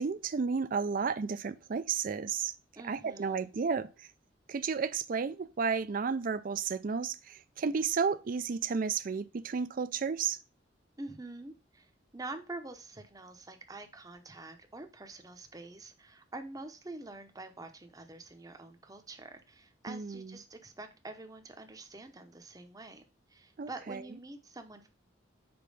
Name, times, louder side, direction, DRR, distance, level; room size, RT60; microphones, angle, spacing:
voice 1, 0.0-2.5 2.8-3.9 4.5-10.4 19.9-20.4 23.6-24.0, right 5 dB, 45° right, 0.4 m, -32 dB
voice 2, 2.8-3.5 11.0-23.0 23.3-24.9, right 2 dB, 20° right, 0.8 m, -46 dB
5.2 x 4.4 x 5.3 m
head